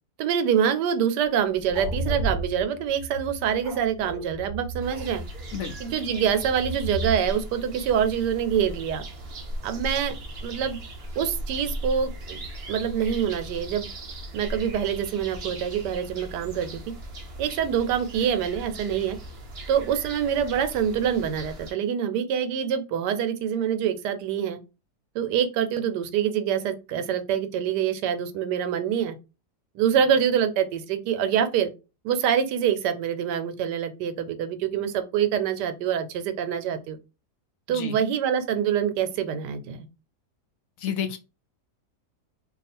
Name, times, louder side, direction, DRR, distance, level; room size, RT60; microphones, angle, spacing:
voice 1, 0.2-5.2 5.8-9.0 9.6-10.2 10.4-10.8 11.2-12.4 12.7-13.9 14.3-16.8 17.4-19.2 19.7-24.6 25.1-29.2 29.7-31.7 32.0-37.0 37.7-39.9, right 8 dB, 85° right, 1.2 m, -25 dB
sound 1, 1.2-2.3 3.5-5.4, equal, 20° right, 1.1 m, -43 dB
sound 2, 1.6-7.2, right 2 dB, 90° left, 1.4 m, -34 dB
sound 3, 4.8-21.7, right 1 dB, 60° right, 0.6 m, -38 dB
voice 2, 37.7-38.0 40.8-41.2, left 8 dB, 70° left, 0.9 m, -30 dB
2.7 x 2.4 x 4.1 m
omnidirectional pair, 1.8 m